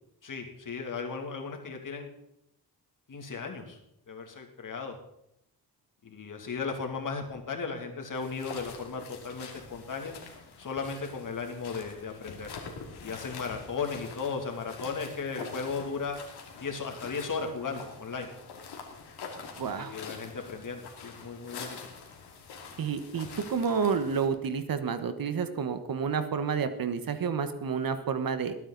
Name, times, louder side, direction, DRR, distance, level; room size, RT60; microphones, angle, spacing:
voice 1, 0.2-2.1 3.1-3.8 4.1-5.0 6.0-10.1 10.6-12.5 13.0-16.2 16.6-18.3 19.7-21.8, left 5 dB, 55° left, 3 dB, 2.6 m, -36 dB
sound 1, 8.1-24.3, left 5 dB, 90° left, 2.6 m, -45 dB
voice 2, 19.6-20.0 22.8-28.5, right 6 dB, 60° right, 10 dB, 1.4 m, -30 dB
20.5 x 9.2 x 4.0 m, 0.77 s
cardioid pair, 85°, 38 cm